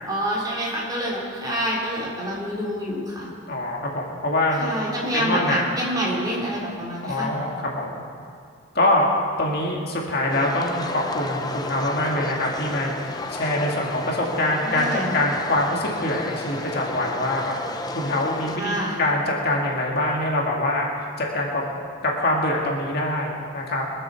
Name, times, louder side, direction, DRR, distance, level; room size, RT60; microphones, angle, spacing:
voice 1, 0.0-3.3 4.6-7.3 14.7-15.2 18.6-19.0, equal, 20° right, -5 dB, 3.6 m, -27 dB
voice 2, 3.5-4.7 5.1-5.6 7.0-8.0 8.7-9.1 9.4-20.9 21.2-21.6 22.0-23.8, left 1 dB, 50° left, -1 dB, 2.0 m, -24 dB
sound 1, 10.3-18.6, left 2 dB, 20° left, 0.6 m, -33 dB
22.5 x 7.7 x 7.0 m, 2.2 s
head